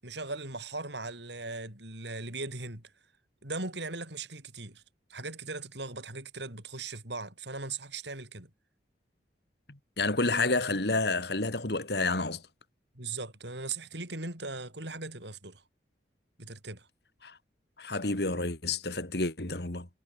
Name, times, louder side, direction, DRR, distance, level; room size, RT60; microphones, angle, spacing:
voice 1, 0.0-2.8 3.4-4.8 5.1-8.5 13.0-15.6 16.4-16.9, right 3 dB, 70° right, 6.7 m, -39 dB
voice 2, 9.7-12.4 17.2-17.4 17.8-19.9, left 3 dB, 65° left, 2.8 m, -30 dB
head